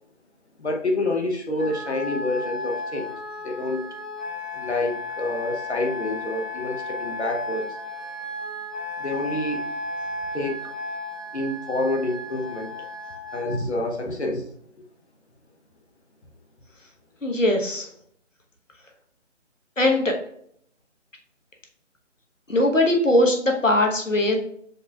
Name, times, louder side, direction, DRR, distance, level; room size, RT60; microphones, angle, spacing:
voice 1, 0.6-3.1 3.4-3.8 4.5-7.8 9.0-9.6 10.3-10.7 11.3-12.7 13.3-14.5 14.8-14.9, left 2 dB, 60° left, 1 dB, 0.9 m, -27 dB
Wind instrument woodwind instrument, 1.6-13.6, left 2 dB, 90° right, 1.5 m, -34 dB
voice 2, 17.2-17.9 19.8-20.1 22.5-24.4, left 1 dB, 85° left, 2 dB, 1.2 m, -20 dB
6.5 x 3.2 x 2.3 m, 0.68 s
figure-of-eight pair, 155°, 37 cm